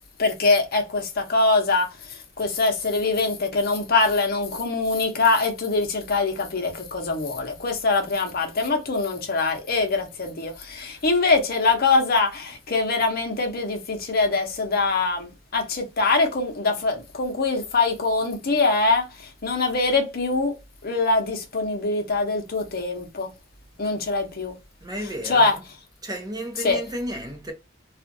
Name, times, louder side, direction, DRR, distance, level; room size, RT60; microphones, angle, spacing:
voice 1, 0.2-1.9 2.4-19.1 19.4-20.5 20.8-23.3 23.8-24.5 25.2-25.5 26.6-26.8, left 3 dB, 50° left, 0.8 m, -23 dB
voice 2, 24.8-25.6 26.0-27.5, right 1 dB, 20° right, 0.7 m, -33 dB
2.4 x 2.4 x 2.6 m
head